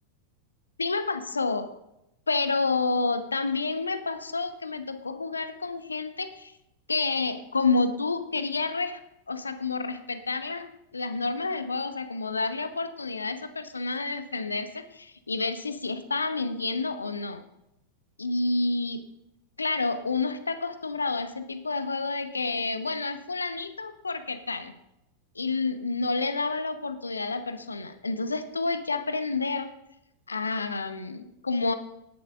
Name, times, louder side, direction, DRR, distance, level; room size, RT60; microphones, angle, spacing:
voice 1, 0.8-1.7 2.3-6.5 6.9-9.0 9.3-17.4 18.2-19.0 19.6-24.7 25.3-29.7 30.3-31.7, left 3 dB, 75° left, 10 dB, 0.9 m, -29 dB
17.5 x 11.0 x 2.5 m, 0.86 s
figure-of-eight pair, 90°, 0 cm